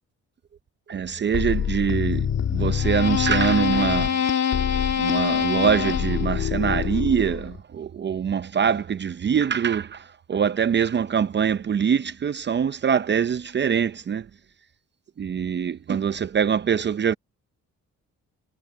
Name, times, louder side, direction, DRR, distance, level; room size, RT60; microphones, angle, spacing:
voice 1, 0.9-4.2 5.0-14.3 15.2-17.1, right 7 dB, 35° right, 0.7 m, -24 dB
sound 1, 1.3-7.6, left 8 dB, 60° left, 2.7 m, -24 dB
cardioid pair, 90°, 30 cm